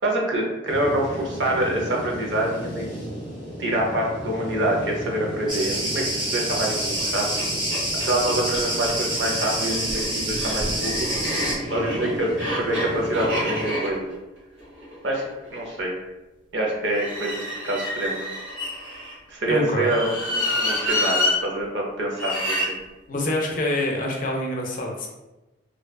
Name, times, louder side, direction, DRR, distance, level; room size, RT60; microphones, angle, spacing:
voice 1, 0.0-2.8 3.6-7.2 8.0-11.1 11.7-12.3 12.6-14.1 15.0-15.2 15.5-16.0 16.5-18.3 19.3-22.8, right 1 dB, 65° right, -1 dB, 0.6 m, -26 dB
sound 1, 0.7-13.7, equal, 5° left, 1.1 m, -35 dB
Cricket, 5.5-11.6, right 1 dB, 25° right, 0.5 m, -27 dB
sound 2, 6.9-7.0 7.4-7.5 7.7-8.6 9.5-15.7 16.9-19.1 19.8-21.4 22.1-22.7, left 1 dB, 85° right, 1.1 m, -28 dB
voice 2, 19.4-19.9 23.1-25.1, left 1 dB, 45° left, 0 dB, 0.4 m, -26 dB
2.6 x 2.3 x 2.3 m, 1.1 s
head